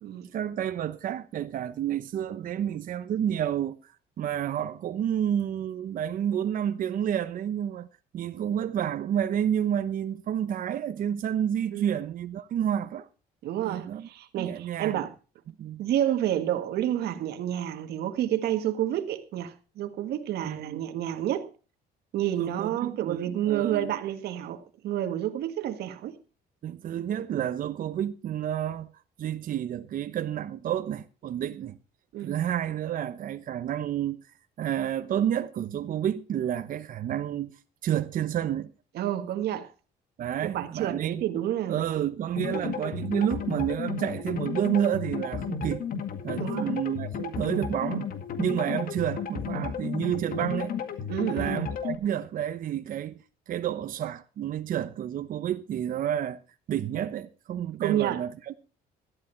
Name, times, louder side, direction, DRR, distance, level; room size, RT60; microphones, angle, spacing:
voice 1, 0.3-3.9 4.2-7.9 8.1-13.1 13.6-14.1 14.4-15.1 15.6-15.8 20.4-20.8 22.4-24.0 26.6-28.9 29.2-31.8 32.2-34.2 34.6-37.5 37.8-38.7 40.2-41.2 41.7-45.8 46.2-48.1 48.4-50.7 51.3-56.4 56.7-58.6, right 10 dB, 55° right, 1.0 m, -30 dB
voice 2, 13.4-15.1 15.8-21.5 22.1-26.2 32.1-32.5 39.0-39.7 40.5-41.8 42.5-42.7 46.4-46.7 51.1-51.7 57.8-58.2, right 11 dB, 70° right, 1.8 m, -29 dB
sound 1, 42.4-52.0, left 6 dB, 60° left, 2.0 m, -33 dB
13.5 x 11.5 x 4.6 m
cardioid pair, 110°, 17 cm